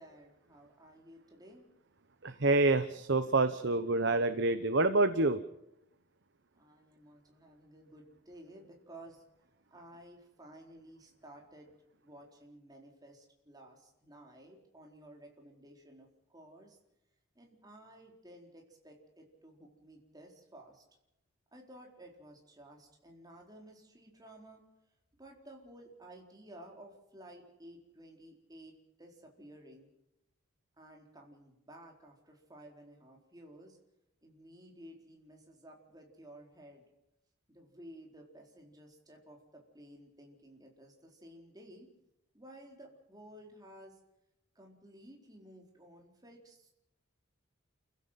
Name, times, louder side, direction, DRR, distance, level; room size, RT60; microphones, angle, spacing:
voice 1, 0.0-1.7 6.5-9.2 9.7-11.7 12.0-16.8 17.3-20.8 21.5-24.6 25.2-28.7 29.0-29.9 30.8-33.8 34.2-36.8 37.5-41.9 42.3-44.0 44.5-46.7, right 1 dB, 20° right, 0 dB, 4.3 m, -54 dB
voice 2, 2.2-5.4, right 2 dB, 55° right, 10 dB, 1.0 m, -27 dB
29.5 x 16.0 x 5.9 m, 0.85 s
head